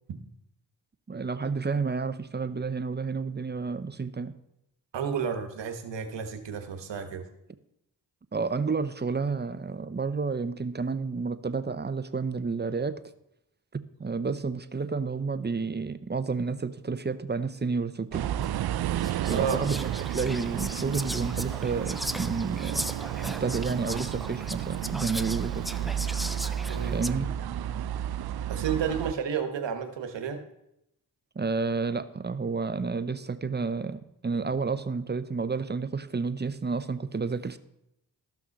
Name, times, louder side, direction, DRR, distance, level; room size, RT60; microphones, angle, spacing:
voice 1, 1.1-4.3 8.3-13.0 13.7-18.3 19.3-22.9 23.3-25.6 26.9-27.3 31.4-37.6, right 4 dB, 25° right, 12 dB, 0.8 m, -30 dB
voice 2, 4.9-7.2 19.3-19.6 26.7-27.3 28.5-30.4, right 7 dB, 85° right, 7 dB, 1.2 m, -31 dB
sound 1, 18.1-29.1, right 11 dB, 60° right, 0.5 m, -32 dB
Whispering, 18.4-18.5 19.0-27.1, equal, ahead, 0.4 m, -38 dB
13.0 x 6.0 x 5.2 m, 0.82 s
cardioid pair, 40°, 42 cm